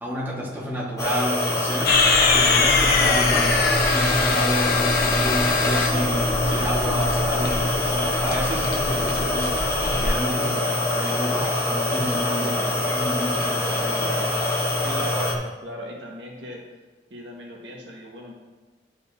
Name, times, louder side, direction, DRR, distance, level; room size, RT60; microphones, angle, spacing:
voice 1, 0.0-2.0 2.3-3.6 3.9-14.3, equal, 10° right, -5 dB, 1.7 m, -31 dB
sound 1, 1.0-15.3, left 1 dB, 20° left, 1.1 m, -24 dB
sound 2, 1.9-10.1, left 3 dB, 55° left, 1.0 m, -23 dB
voice 2, 14.8-16.7 17.1-18.3, equal, 80° right, -2 dB, 1.6 m, -37 dB
11.0 x 5.1 x 2.8 m, 1.3 s
head